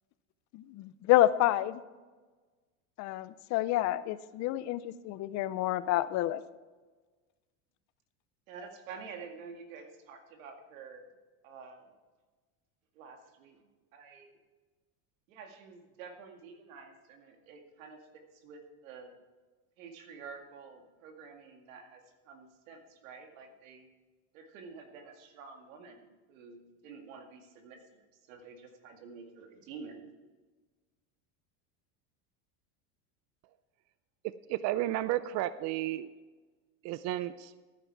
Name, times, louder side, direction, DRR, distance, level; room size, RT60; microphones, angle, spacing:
voice 1, 0.5-1.8 3.0-6.4, left 14 dB, 45° left, 16 dB, 0.5 m, -28 dB
voice 2, 8.5-11.1 11.4-11.9 12.9-13.6 13.9-14.4 15.3-19.2 19.8-23.9 24.3-30.1, right 5 dB, 85° right, 4 dB, 2.2 m, -49 dB
voice 3, 34.5-36.1 36.8-37.5, right 14 dB, 45° right, 15 dB, 0.5 m, -32 dB
14.5 x 9.3 x 4.6 m, 1.3 s
supercardioid pair, 135°, 39 cm